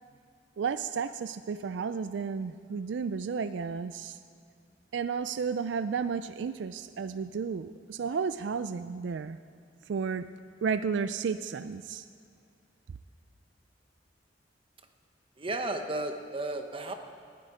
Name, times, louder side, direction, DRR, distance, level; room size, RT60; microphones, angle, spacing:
voice 1, 0.6-4.2 4.9-9.4 9.9-10.3 10.6-12.1, right 5 dB, 75° right, 12 dB, 0.4 m, -32 dB
voice 2, 15.4-16.9, right 2 dB, 30° right, 5 dB, 1.0 m, -33 dB
19.0 x 10.0 x 5.0 m, 2.3 s
head